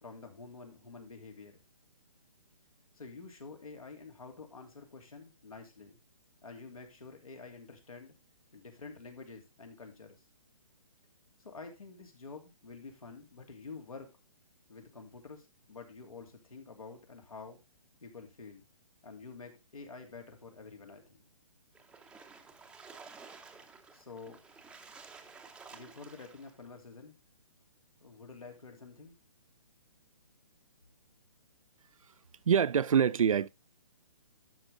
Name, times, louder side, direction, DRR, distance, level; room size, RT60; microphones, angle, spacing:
voice 1, 0.0-1.5 2.9-6.0 6.4-8.1 8.5-10.2 11.4-14.2 14.7-17.6 18.0-18.6 19.0-21.2 23.9-24.4 25.7-27.2 28.0-29.1, left 4 dB, 85° left, 3.0 m, -49 dB
Splash splatter, 21.7-26.6, right 4 dB, 5° right, 0.7 m, -53 dB
voice 2, 32.5-33.5, right 7 dB, 70° right, 0.5 m, -25 dB
12.0 x 6.1 x 3.6 m
hypercardioid pair, 140°, 18 cm